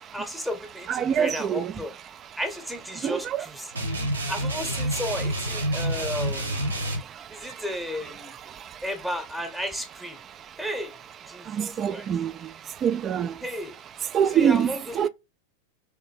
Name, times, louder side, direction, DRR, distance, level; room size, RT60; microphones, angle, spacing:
voice 1, 0.1-1.9 2.4-3.7 4.3-6.7 7.3-8.3 8.8-10.2 10.6-11.0 11.3-12.1 13.4-13.8 14.3-15.1, equal, ahead, 0.9 m, -33 dB
voice 2, 0.9-1.7 3.0-3.2 11.6-12.3 12.8-13.3 14.1-14.7 14.9-15.1, right 8 dB, 30° right, 0.3 m, -23 dB
sound 1, 3.7-7.0, right 1 dB, 75° right, 1.2 m, -28 dB
3.4 x 2.9 x 3.9 m
figure-of-eight pair, 90°, 0 cm